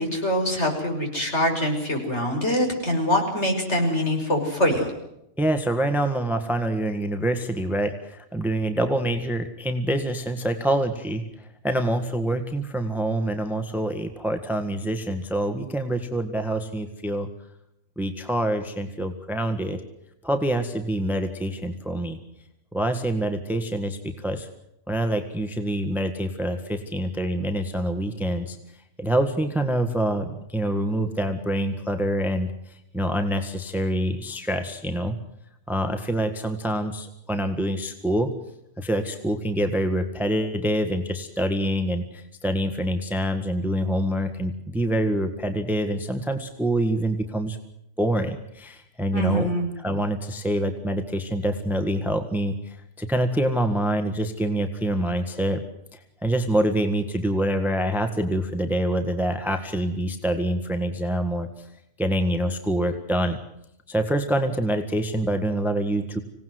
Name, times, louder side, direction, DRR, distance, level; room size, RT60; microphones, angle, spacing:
voice 1, 0.0-4.9 49.1-49.7, equal, 50° left, 2 dB, 6.5 m, -24 dB
voice 2, 5.4-17.3 18.0-19.8 20.2-22.2 22.7-24.5 24.9-28.6 29.0-35.2 35.7-38.3 38.8-47.6 48.0-49.5 49.8-55.6 55.9-61.7 62.0-63.4 63.9-66.2, right 1 dB, ahead, 7 dB, 1.6 m, -26 dB
26.0 x 18.0 x 7.9 m, 0.81 s
omnidirectional pair, 1.5 m